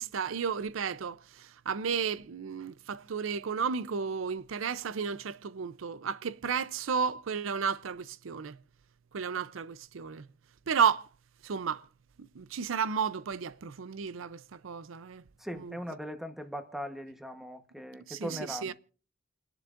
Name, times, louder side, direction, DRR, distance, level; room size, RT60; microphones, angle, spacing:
voice 1, 0.0-8.6 9.1-10.3 10.7-11.1 11.4-11.9 12.2-15.2 15.5-15.8 18.1-18.7, right 6 dB, 90° right, 0.5 m, -33 dB
voice 2, 15.4-18.7, equal, ahead, 1.0 m, -40 dB
29.0 x 11.0 x 2.5 m
head